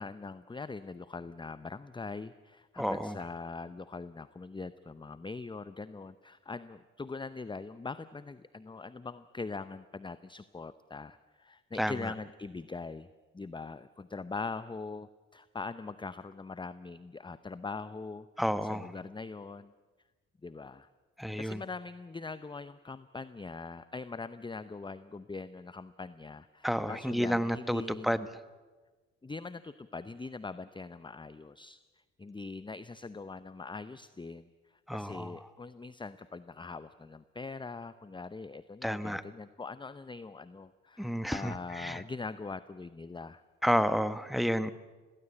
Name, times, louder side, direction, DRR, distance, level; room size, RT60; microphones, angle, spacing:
voice 1, 0.0-13.1 13.3-19.7 20.4-20.9 21.4-28.1 29.2-31.8 32.2-43.4, left 4 dB, 15° left, 14 dB, 0.7 m, -42 dB
voice 2, 2.8-3.2 11.8-11.9 18.4-18.9 21.2-21.6 26.6-28.3 34.9-35.3 38.8-39.2 41.0-42.0 43.6-44.7, equal, ahead, 13 dB, 1.3 m, -30 dB
19.0 x 17.0 x 10.0 m, 1.3 s
supercardioid pair, 55°, 29 cm